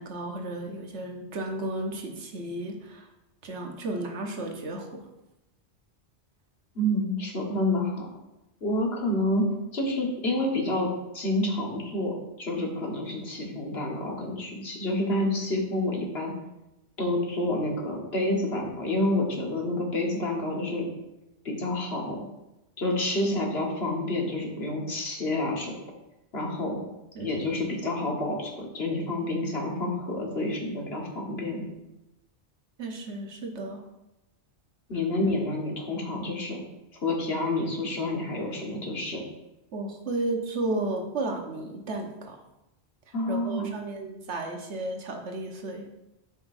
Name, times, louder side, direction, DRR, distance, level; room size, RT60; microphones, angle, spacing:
voice 1, 0.0-3.1 3.4-5.0 27.1-27.3 32.8-33.8 39.7-42.4 43.3-45.9, right 2 dB, 85° right, 2 dB, 1.4 m, -33 dB
voice 2, 6.8-8.1 8.6-16.3 17.0-20.9 21.5-22.3 22.8-25.7 26.3-26.8 27.2-31.6 34.9-36.6 37.0-39.2 43.1-43.7, left 1 dB, 65° left, -1 dB, 1.8 m, -28 dB
12.5 x 5.3 x 2.7 m, 0.95 s
omnidirectional pair, 1.1 m